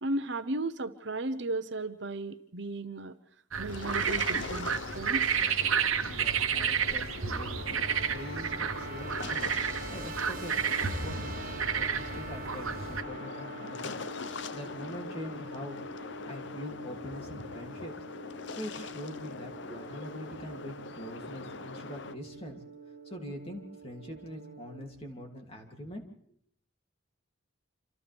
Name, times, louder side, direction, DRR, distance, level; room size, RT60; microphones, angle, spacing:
voice 1, 0.0-3.1 3.6-5.3, right 2 dB, 60° right, 10 dB, 0.9 m, -35 dB
sound 1, 3.5-13.0, right 7 dB, 90° right, 1.2 m, -31 dB
sound 2, 3.7-22.1, left 4 dB, 60° left, 0.7 m, -42 dB
voice 2, 6.0-7.9 8.1-9.5 9.9-14.0 14.3-15.8 16.3-17.9 18.5-22.6 23.0-26.0, equal, 30° left, 2 dB, 2.9 m, -43 dB
sound 3, 7.1-24.8, right 2 dB, 45° right, 1.4 m, -45 dB
27.5 x 26.5 x 3.6 m, 0.65 s
head